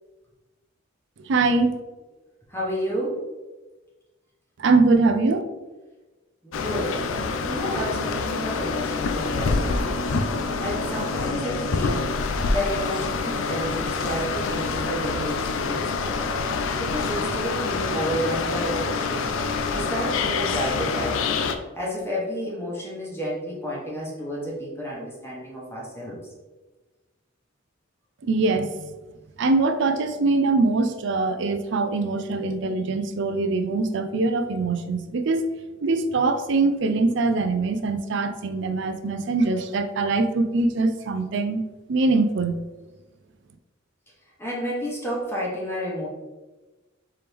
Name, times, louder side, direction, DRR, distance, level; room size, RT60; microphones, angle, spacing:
voice 1, 1.3-1.8 4.6-5.4 28.2-28.9 29.4-35.4 35.8-41.6 41.9-42.6, right 3 dB, 65° right, 9 dB, 0.4 m, -22 dB
voice 2, 2.5-3.2 6.4-7.0 7.4-10.0 10.6-12.1 12.5-16.2 16.8-19.3 19.7-21.4 21.7-26.2 44.4-46.1, equal, 10° left, -5 dB, 1.0 m, -30 dB
sound 1, 6.5-21.5, left 4 dB, 85° left, 0.4 m, -26 dB
4.5 x 3.4 x 3.4 m, 1.2 s
head